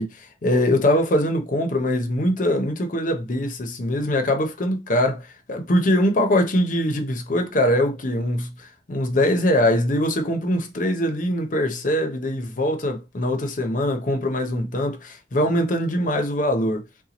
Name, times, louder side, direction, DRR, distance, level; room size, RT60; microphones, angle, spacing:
voice 1, 0.0-16.8, left 1 dB, 45° left, 0.6 m, -22 dB
2.9 x 2.2 x 3.9 m
head